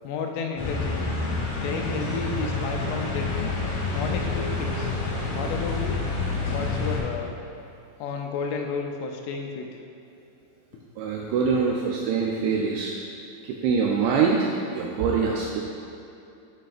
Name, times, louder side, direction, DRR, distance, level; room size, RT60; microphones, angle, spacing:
voice 1, 0.0-1.1 1.6-3.5 3.9-4.9 5.4-6.0 6.5-7.3 8.0-9.7, left 4 dB, 85° left, 3 dB, 3.2 m, -32 dB
sound 1, 0.6-7.0, left 3 dB, 65° left, 2.3 m, -28 dB
voice 2, 11.0-12.9 13.6-14.5 14.8-15.6, right 5 dB, 85° right, -2 dB, 2.6 m, -24 dB
8.8 x 7.6 x 2.5 m, 2.8 s
omnidirectional pair, 5.6 m